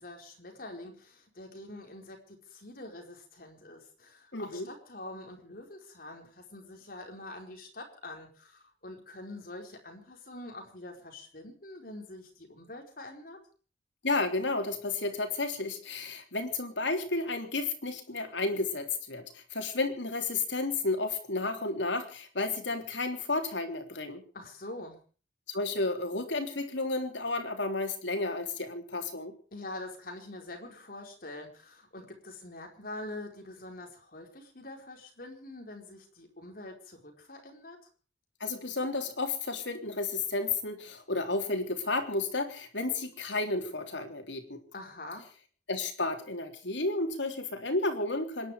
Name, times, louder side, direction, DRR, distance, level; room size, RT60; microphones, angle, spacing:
voice 1, 0.0-13.4 24.3-25.0 29.5-37.8 44.7-45.2, left 2 dB, 50° left, 3 dB, 4.7 m, -45 dB
voice 2, 4.3-4.7 14.0-24.2 25.5-29.3 38.4-44.6 45.7-48.5, left 3 dB, 90° left, 5 dB, 3.4 m, -32 dB
27.0 x 11.0 x 5.0 m, 0.41 s
head